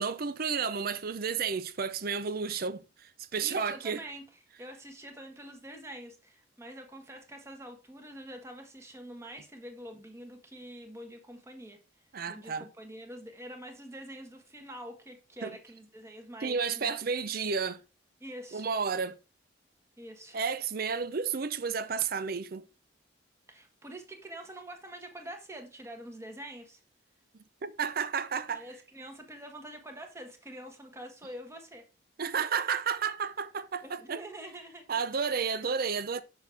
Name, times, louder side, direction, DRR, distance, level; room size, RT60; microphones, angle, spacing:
voice 1, 0.0-4.0 12.1-12.7 15.4-15.6 16.4-17.8 18.5-19.2 20.3-22.6 27.6-28.6 32.2-34.2 34.9-36.2, right 6 dB, 50° right, 0.6 m, -32 dB
voice 2, 3.4-4.2 4.6-11.8 12.3-17.0 18.2-18.7 20.0-20.4 23.5-26.8 28.5-31.9 33.8-35.0 35.3-35.6, right 1 dB, 15° right, 1.3 m, -46 dB
6.4 x 6.2 x 3.4 m
head